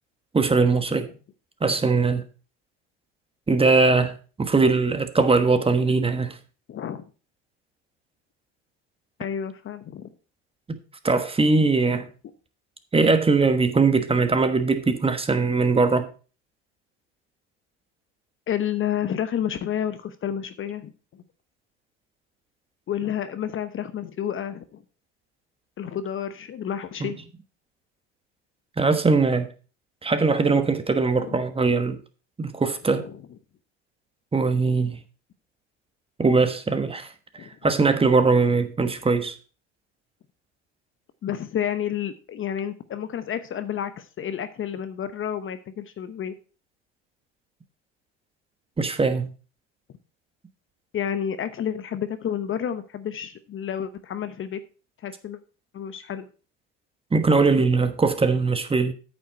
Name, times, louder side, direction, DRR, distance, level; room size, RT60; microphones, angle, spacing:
voice 1, 0.3-1.1 1.6-2.2 3.5-6.4 10.7-10.8 11.0-12.1 12.9-16.1 27.0-27.1 28.8-29.5 30.0-32.0 32.4-33.1 34.3-35.0 36.2-37.1 37.4-39.3 48.8-49.3 57.1-58.9, right 4 dB, 15° right, 1.2 m, -21 dB
voice 2, 6.7-7.1 9.2-10.1 18.5-21.2 22.9-24.8 25.8-27.2 31.2-31.4 32.9-33.2 37.4-37.5 41.2-46.4 50.9-54.6 55.0-55.4 55.7-56.3, left 9 dB, 35° left, 0.9 m, -30 dB
8.9 x 7.0 x 4.4 m
hypercardioid pair, 80°, 35 cm